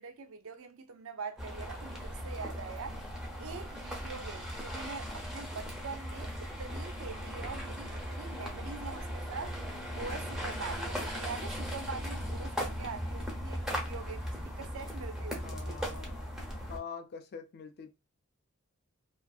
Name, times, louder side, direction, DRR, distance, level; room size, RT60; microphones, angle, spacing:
voice 1, 0.0-3.0 3.4-9.6 9.9-15.8, right 5 dB, 65° right, 0.5 m, -43 dB
sound 1, 1.4-16.8, equal, 5° right, 0.6 m, -38 dB
voice 2, 15.4-16.3 16.7-17.9, left 6 dB, 45° left, 0.4 m, -44 dB
2.5 x 2.4 x 2.3 m
head